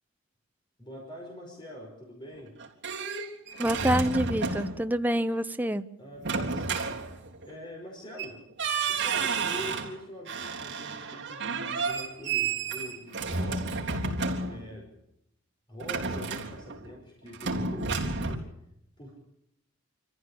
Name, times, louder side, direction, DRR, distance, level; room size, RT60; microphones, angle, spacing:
voice 1, 0.8-2.6 6.0-6.9 7.4-8.4 8.9-13.9 14.4-14.9 15.7-18.5 19.0-19.2, equal, 20° left, -1 dB, 5.3 m, -44 dB
sound 1, 2.4-4.9 6.2-7.5 8.2-8.3 8.6-9.9 10.3-14.8 15.8-17.0 17.3-18.4, right 4 dB, 55° right, 3.7 m, -31 dB
voice 2, 3.6-5.9, equal, 10° right, 9 dB, 0.8 m, -27 dB
26.5 x 15.0 x 8.6 m, 0.77 s
head